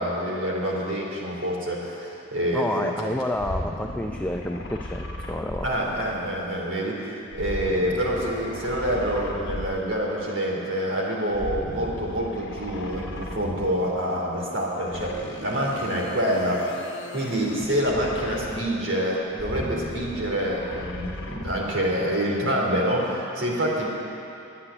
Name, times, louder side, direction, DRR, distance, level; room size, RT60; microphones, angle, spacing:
voice 1, 0.0-3.1 5.6-16.8 17.1-23.9, equal, 80° right, -3 dB, 2.9 m, -27 dB
voice 2, 2.5-5.6, left 1 dB, 5° left, 2 dB, 0.4 m, -29 dB
sound 1, 3.4-6.4 7.3-10.0 11.3-13.9 14.9-18.8 19.3-21.8, left 1 dB, 65° left, 1.1 m, -36 dB
9.7 x 8.6 x 9.9 m, 2.8 s
head